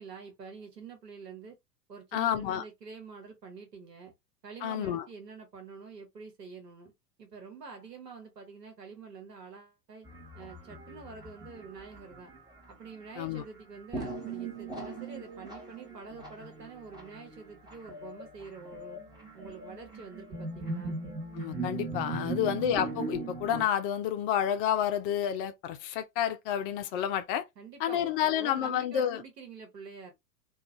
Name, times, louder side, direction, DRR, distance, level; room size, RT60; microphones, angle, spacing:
voice 1, 0.0-1.6 1.9-4.1 4.4-6.9 7.2-10.1 10.3-12.3 12.7-19.0 19.3-21.0 22.2-22.5 27.6-30.1, right 5 dB, 85° right, 1.2 m, -47 dB
voice 2, 2.1-2.6 4.6-5.0 13.2-13.4 21.3-27.5 27.8-29.2, left 10 dB, 40° left, 0.5 m, -30 dB
sound 1, 10.0-12.9 13.9-23.7, right 3 dB, 10° right, 1.0 m, -39 dB
2.4 x 2.3 x 3.0 m
figure-of-eight pair, 90°, 47 cm